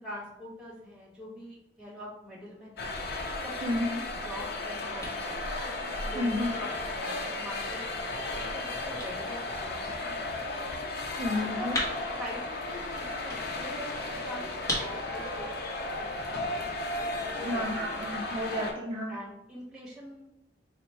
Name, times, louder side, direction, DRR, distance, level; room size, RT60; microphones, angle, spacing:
voice 1, 0.0-2.9 3.4-5.5 6.0-10.6 11.4-11.7 12.1-15.5 15.8-16.8 17.3-18.0 19.1-20.2, equal, 5° right, -6 dB, 1.4 m, -44 dB
sound 1, 2.8-18.7, left 2 dB, 60° left, 0.6 m, -35 dB
voice 2, 3.6-4.0 6.1-6.5 11.2-11.8 17.4-19.2, left 1 dB, 30° right, -4 dB, 0.5 m, -31 dB
sound 2, 4.1-17.6, left 1 dB, 20° left, 1.1 m, -43 dB
4.1 x 2.1 x 4.3 m, 0.86 s
head